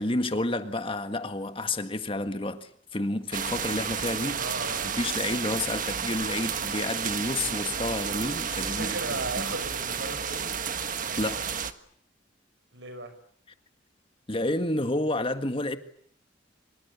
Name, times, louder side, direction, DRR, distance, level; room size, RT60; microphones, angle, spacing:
voice 1, 0.0-4.4 4.8-9.5 11.2-11.6 14.3-15.8, left 2 dB, 30° left, 1.7 m, -30 dB
sound 1, 3.3-11.7, right 7 dB, 45° right, 1.6 m, -31 dB
voice 2, 4.4-4.9 8.6-10.5 12.7-13.1, right 2 dB, 75° right, 6.6 m, -36 dB
25.5 x 25.0 x 8.3 m
head